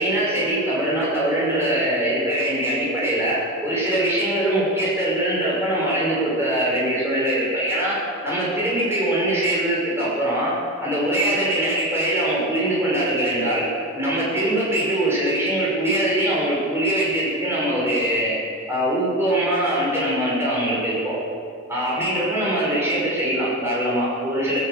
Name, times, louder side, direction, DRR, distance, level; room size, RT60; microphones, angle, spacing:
voice 1, 0.0-8.0 8.2-10.5 10.8-13.7 14.0-18.4 18.7-21.2 21.7-24.6, right 1 dB, 10° right, -6 dB, 5.4 m, -22 dB
17.5 x 9.8 x 8.2 m, 2.4 s
head